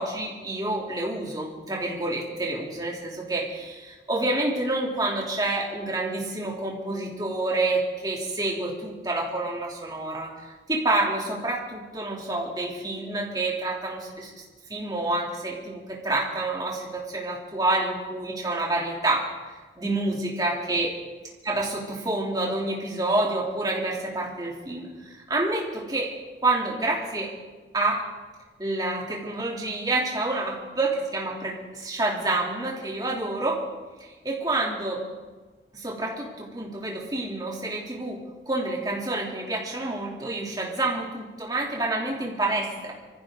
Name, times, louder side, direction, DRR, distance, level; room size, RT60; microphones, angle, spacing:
voice 1, 0.0-14.4 14.7-19.3 19.8-20.9 21.4-26.1 26.4-27.3 27.7-28.1 28.6-33.6 34.0-35.0 35.7-42.9, right 2 dB, 20° right, -3 dB, 3.1 m, -28 dB
24.0 x 15.0 x 3.9 m, 1.3 s
head